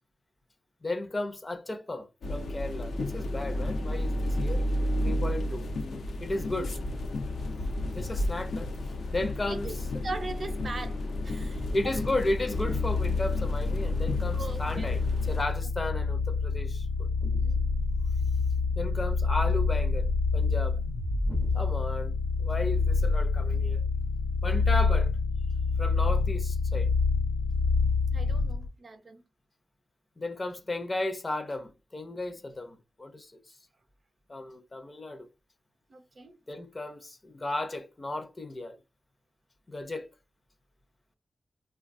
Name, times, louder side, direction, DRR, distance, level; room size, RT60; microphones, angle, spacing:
voice 1, 0.8-4.7 5.0-5.7 6.2-6.7 7.9-8.7 9.1-9.7 11.7-15.0 15.3-17.1 18.8-20.8 21.5-22.1 22.4-23.8 24.4-25.1 25.8-26.9 30.2-33.3 34.3-35.3 36.5-38.8 39.7-40.1, left 2 dB, 35° left, 0.5 m, -34 dB
sound 1, 2.2-15.4, left 1 dB, 85° left, 0.5 m, -32 dB
voice 2, 6.3-6.7 9.5-12.1 14.3-14.9 17.4-17.7 28.1-29.2 35.9-36.3, right 3 dB, 50° right, 0.6 m, -40 dB
sound 2, 12.5-28.7, left 4 dB, 60° left, 0.8 m, -27 dB
3.2 x 2.3 x 2.5 m
cardioid pair, 80°, 0 cm